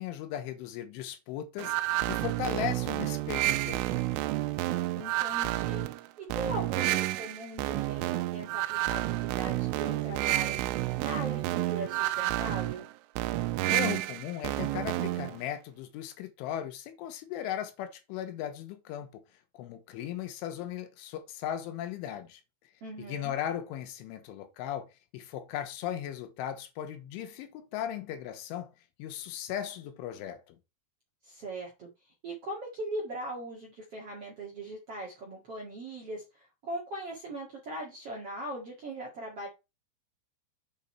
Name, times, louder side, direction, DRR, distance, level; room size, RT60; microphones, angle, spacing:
voice 1, 0.0-4.2 13.6-19.2 19.6-22.4 23.0-24.9 25.1-28.7 29.0-30.6, left 10 dB, 85° left, 3.5 m, -37 dB
sound 1, 1.6-15.4, right 16 dB, 90° right, 3.2 m, -30 dB
voice 2, 4.9-5.8 6.2-10.6 11.0-12.9 22.8-23.3 31.2-31.9 32.2-39.5, right 1 dB, 50° right, 1.8 m, -39 dB
8.1 x 5.4 x 4.3 m
omnidirectional pair, 5.6 m